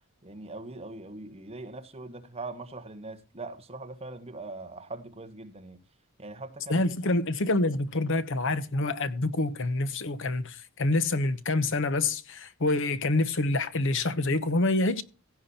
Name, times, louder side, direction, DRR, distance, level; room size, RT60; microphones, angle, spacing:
voice 1, 0.2-5.8 6.2-6.9, right 2 dB, 30° right, 1.4 m, -41 dB
voice 2, 6.7-15.0, left 2 dB, 60° left, 1.0 m, -27 dB
16.0 x 8.4 x 4.3 m
head